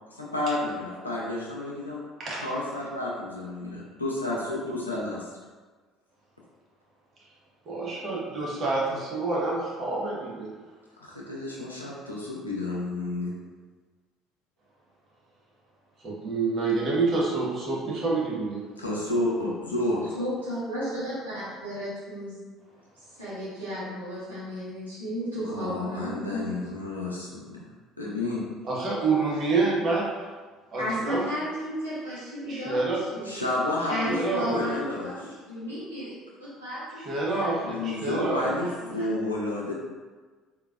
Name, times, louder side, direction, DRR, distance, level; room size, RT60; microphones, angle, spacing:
voice 1, 0.1-2.0 2.4-5.3 11.0-13.3 18.8-20.1 25.4-27.6 28.0-28.5 33.2-35.1 37.6-39.7, left 2 dB, 85° left, -4 dB, 0.5 m, -31 dB
voice 2, 7.7-10.5 16.0-18.6 28.6-30.1 30.7-31.2 32.5-33.0 33.9-34.5 37.1-38.5, right 3 dB, 40° right, -5 dB, 1.0 m, -27 dB
voice 3, 20.2-22.4 23.2-26.4 30.8-33.5 33.9-36.1 36.6-36.8 37.1-37.9 38.6-39.0, equal, 85° right, -12 dB, 1.2 m, -34 dB
3.6 x 2.8 x 2.4 m, 1.4 s
figure-of-eight pair, 55°, 0 cm